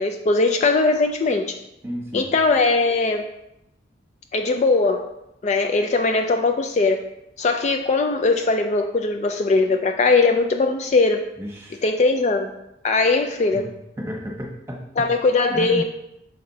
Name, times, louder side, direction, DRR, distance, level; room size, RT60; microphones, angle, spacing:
voice 1, 0.0-1.5 2.1-3.3 4.3-5.1 5.4-7.0 7.4-11.3 11.8-12.5 12.8-13.7 15.0-15.8, left 3 dB, 40° left, 5 dB, 0.3 m, -20 dB
voice 2, 1.8-2.3 11.4-11.9 13.5-13.6 14.0-15.1 15.5-15.8, equal, 15° right, -1 dB, 1.1 m, -32 dB
6.4 x 4.3 x 3.9 m, 0.84 s
head